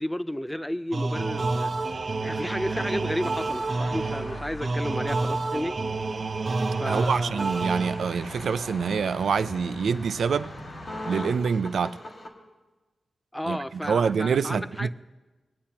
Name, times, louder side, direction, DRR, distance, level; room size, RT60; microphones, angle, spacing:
voice 1, 0.0-1.7 2.2-5.8 6.8-7.4 13.3-14.9, equal, 5° left, 0.3 m, -32 dB
sound 1, 0.9-8.3, right 3 dB, 50° right, 0.7 m, -29 dB
sound 2, 1.1-11.4, left 1 dB, 65° left, 2.4 m, -43 dB
voice 2, 6.9-10.5 11.1-12.0 13.5-14.9, right 6 dB, 85° right, 0.3 m, -26 dB
sound 3, 7.3-12.3, left 1 dB, 40° left, 1.4 m, -43 dB
19.5 x 8.6 x 2.8 m
wide cardioid pair, 115°, 0 cm